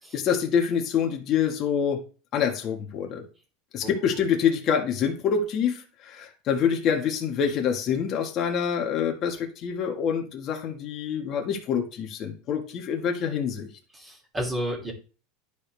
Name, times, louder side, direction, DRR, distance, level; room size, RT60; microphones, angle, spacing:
voice 1, 0.1-2.0 2.3-3.2 3.7-13.7, left 7 dB, 40° left, 2 dB, 1.7 m, -26 dB
voice 2, 13.9-14.9, equal, 15° right, -2 dB, 3.0 m, -31 dB
11.5 x 5.1 x 3.4 m, 0.36 s
supercardioid pair, 130°, 0 cm